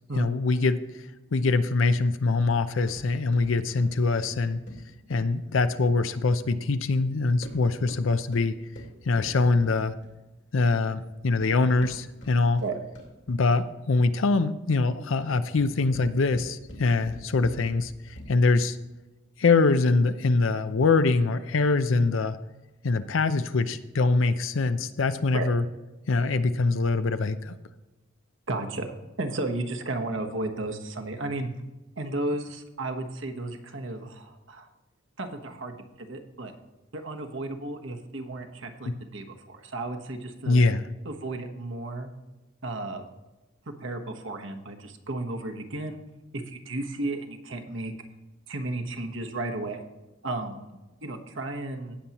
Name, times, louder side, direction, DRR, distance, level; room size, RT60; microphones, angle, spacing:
voice 1, 0.1-0.8 1.3-4.6 5.1-8.5 9.1-9.9 10.5-12.6 13.3-17.9 18.3-18.8 19.4-22.4 22.8-25.6 26.1-27.5 38.9-39.0 40.4-40.8, left 3 dB, 75° left, 12 dB, 0.6 m, -23 dB
sound 1, 2.4-6.6 7.3-10.3 11.1-13.3 15.3-18.6, equal, 60° left, 2.6 m, -46 dB
voice 2, 28.5-31.5 32.0-34.7 35.2-36.5 36.9-40.6 41.0-42.1 42.6-43.0 43.8-46.0 46.3-47.9 48.5-49.8 50.2-52.0, right 2 dB, 70° right, 5 dB, 1.1 m, -33 dB
17.5 x 7.0 x 3.0 m, 1.1 s
head